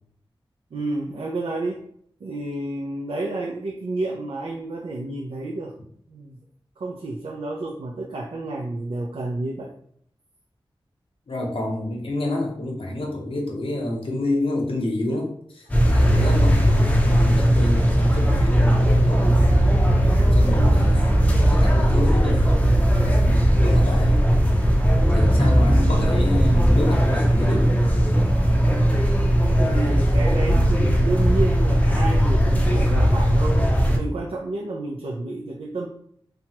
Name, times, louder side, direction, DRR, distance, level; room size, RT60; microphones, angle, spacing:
voice 1, 0.7-1.8 2.2-5.7 6.1-6.4 6.8-9.7 20.4-21.0 25.6-26.1 29.7-33.7 33.9-35.9, right 2 dB, 85° right, 0 dB, 0.4 m, -30 dB
voice 2, 11.3-19.4 20.3-22.9 23.6-24.2 25.1-27.8, left 1 dB, 75° left, 0 dB, 0.7 m, -29 dB
sound 1, 15.7-34.0, equal, 15° left, 0.5 m, -18 dB
2.8 x 2.2 x 2.8 m, 0.65 s
wide cardioid pair, 95°, 9 cm